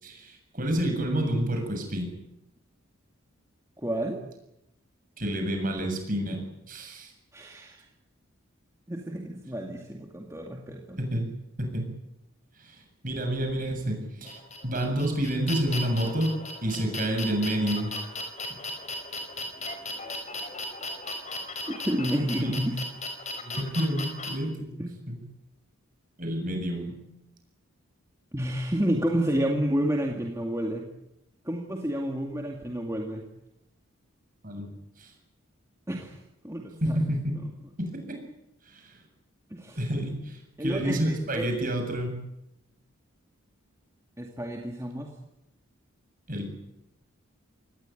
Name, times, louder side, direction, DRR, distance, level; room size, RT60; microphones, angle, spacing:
voice 1, 0.0-2.1 5.2-6.4 6.7-7.1 11.0-11.3 11.6-11.9 12.6-12.8 13.0-16.3 16.6-17.9 22.4-22.5 23.4-24.7 25.1-25.2 26.2-26.9 34.4-34.7 35.0-35.1 36.8-37.3 37.8-38.2 38.7-39.0 39.7-42.2 46.3-46.5, right 1 dB, 40° right, 4 dB, 7.4 m, -29 dB
voice 2, 3.8-4.2 7.3-7.8 8.9-11.0 21.7-22.8 24.8-25.0 28.3-30.8 31.4-33.2 35.9-36.2 36.4-37.0 39.5-39.8 40.6-41.5 44.2-45.1, equal, 15° right, 0 dB, 2.3 m, -30 dB
sound 1, 14.2-24.3, left 2 dB, 30° left, 5.0 m, -36 dB
26.0 x 19.0 x 9.3 m, 0.89 s
head